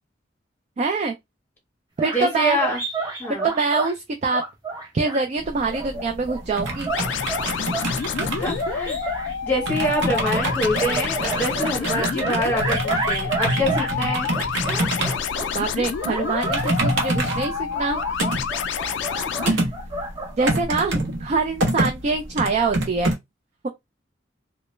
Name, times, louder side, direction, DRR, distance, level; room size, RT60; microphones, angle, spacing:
voice 1, 0.8-1.1 2.0-2.6 3.4-4.4 4.9-6.9 15.5-18.0 19.4-19.7 20.4-23.2, right 4 dB, 40° right, 0.3 m, -24 dB
sound 1, 2.0-3.9 4.3-5.2 5.7-9.3 10.1-14.0 14.3-15.5 15.9-20.6, right 3 dB, 20° right, 0.7 m, -30 dB
voice 2, 2.1-2.8 3.2-3.5 8.4-9.0 9.4-14.3 19.4-19.6, equal, 10° left, 0.7 m, -25 dB
sound 2, 5.4-23.1, right 1 dB, 85° right, 0.8 m, -27 dB
sound 3, 6.9-19.5, left 7 dB, 75° left, 0.3 m, -28 dB
2.1 x 2.0 x 3.1 m
head